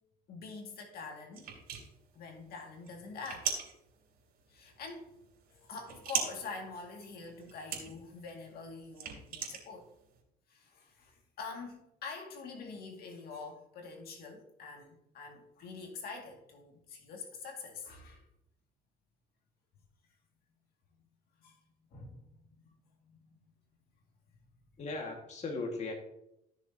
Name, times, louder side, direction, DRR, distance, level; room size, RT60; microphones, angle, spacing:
voice 1, 0.3-1.5 2.1-3.5 4.5-5.1 5.5-9.9 10.5-18.2 21.4-21.6 21.9-22.3 22.6-23.4, left 4 dB, 65° left, 2 dB, 2.1 m, -46 dB
sound 1, 1.3-10.2, right 6 dB, 65° right, 3.1 m, -41 dB
voice 2, 24.8-25.9, left 3 dB, 40° left, 1 dB, 1.8 m, -37 dB
14.5 x 6.6 x 2.8 m, 0.81 s
cardioid pair, 110°, 17 cm